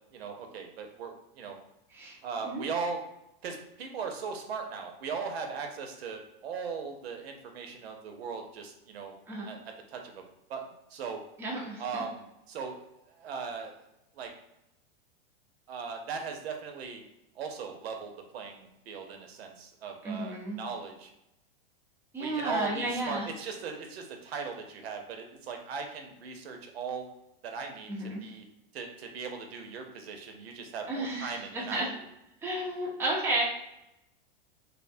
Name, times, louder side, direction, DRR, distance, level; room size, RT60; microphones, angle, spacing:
voice 1, 0.1-1.6 2.2-3.0 3.4-9.1 9.4-9.6 9.9-10.2 10.5-11.2 11.8-12.8 13.2-13.7 14.2-14.3 15.7-17.0 17.4-21.1 22.2-27.1 27.4-28.4 28.7-32.0, right 5 dB, 85° right, 4 dB, 0.6 m, -38 dB
voice 2, 11.4-12.0 20.0-20.6 22.1-23.3 27.9-28.2 30.9-31.9 32.4-33.4, right 1 dB, 10° right, -4 dB, 0.5 m, -32 dB
2.6 x 2.1 x 2.5 m, 0.86 s
supercardioid pair, 135°, 30 cm